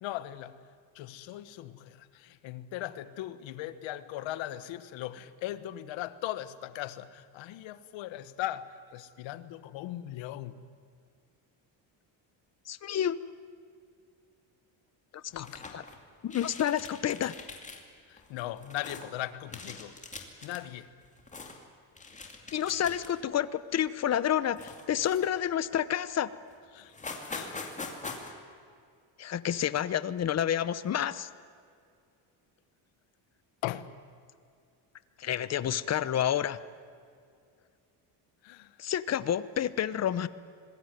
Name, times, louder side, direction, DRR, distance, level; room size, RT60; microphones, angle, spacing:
voice 1, 0.0-0.6 0.9-10.6 15.3-15.5 18.1-20.0 20.4-20.9 26.7-26.9 27.3-27.7 33.6-34.0 38.4-38.7, left 14 dB, 80° left, 1.4 m, -39 dB
voice 2, 12.7-13.2 15.1-15.5 15.7-15.8 16.2-17.3 22.5-26.3 29.2-31.3 35.2-36.6 38.8-40.3, left 10 dB, 35° left, 0.9 m, -29 dB
sound 1, 15.3-16.0 16.3-17.8 18.2-19.1 19.5-20.6 21.0-21.6 22.0-23.3 23.7-23.9 24.5-25.5 26.1-26.2 26.5-26.6 26.8-28.3, left 3 dB, 15° left, 2.5 m, -43 dB
25.5 x 20.5 x 9.3 m
cardioid pair, 155°, 45 cm